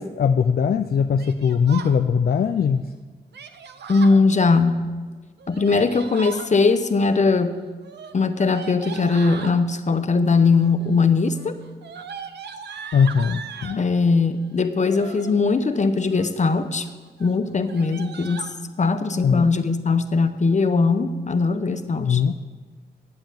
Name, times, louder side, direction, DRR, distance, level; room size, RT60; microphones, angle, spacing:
voice 1, 0.0-2.9 12.9-13.8 19.2-19.5 22.0-22.3, left 6 dB, 65° left, 8 dB, 0.5 m, -20 dB
Yell, 1.2-2.0 3.3-4.2 5.4-6.5 7.8-9.6 10.5-10.9 11.2-13.8 14.8-15.3 15.9-16.4 16.8-16.9 17.2-17.3 17.6-18.5, right 6 dB, 90° right, 0.6 m, -38 dB
voice 2, 3.9-4.8 5.5-7.5 8.1-11.5 13.8-16.8 17.2-18.5 18.8-22.2, left 4 dB, 45° left, 9 dB, 0.9 m, -20 dB
10.5 x 8.0 x 7.2 m, 1.4 s
cardioid pair, 55°, 17 cm